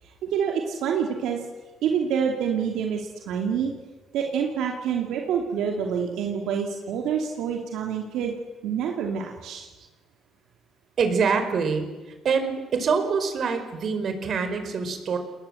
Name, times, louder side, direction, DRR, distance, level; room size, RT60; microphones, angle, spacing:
voice 1, 0.0-1.4 1.8-3.7 4.1-8.4 8.6-9.7, right 7 dB, 85° right, 2 dB, 2.7 m, -27 dB
voice 2, 11.0-11.9 12.2-15.2, right 5 dB, 60° right, 7 dB, 5.1 m, -25 dB
29.5 x 20.5 x 7.9 m, 1.2 s
cardioid pair, 90°, 0 cm